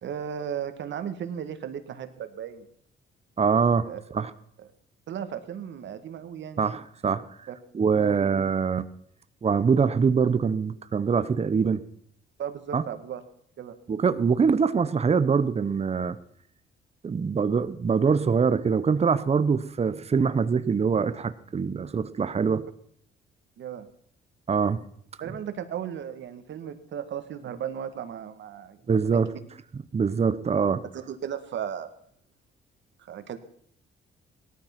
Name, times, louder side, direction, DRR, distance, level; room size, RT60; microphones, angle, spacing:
voice 1, 0.0-2.7 3.9-4.0 5.1-6.6 7.5-7.6 7.9-8.3 12.4-13.2 13.6-13.8 23.6-23.9 25.2-29.4 30.9-31.9 33.0-33.4, right 9 dB, 65° right, 9 dB, 1.8 m, -35 dB
voice 2, 3.4-4.3 6.6-7.5 7.7-8.8 9.4-11.8 12.7-12.8 13.9-16.2 17.0-22.6 24.5-24.8 28.9-29.3 29.9-30.8, right 5 dB, 30° right, 13 dB, 0.9 m, -24 dB
18.0 x 13.0 x 6.0 m, 0.67 s
cardioid pair, 90°, 20 cm